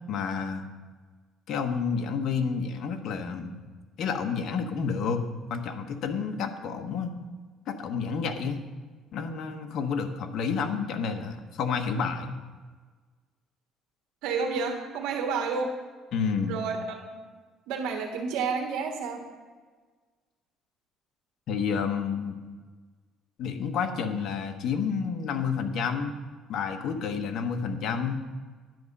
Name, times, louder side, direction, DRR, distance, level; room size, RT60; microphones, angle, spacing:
voice 1, 0.1-0.7 1.5-3.6 4.0-5.2 5.5-7.1 7.7-8.6 9.1-12.4 16.1-16.6 21.5-22.4 23.4-26.1 26.5-28.2, left 6 dB, 60° left, 5 dB, 1.2 m, -30 dB
voice 2, 14.2-15.7 16.5-17.2 17.7-19.2, right 5 dB, 85° right, 2 dB, 1.5 m, -30 dB
11.0 x 8.5 x 5.4 m, 1.4 s
cardioid pair, 120°, 0 cm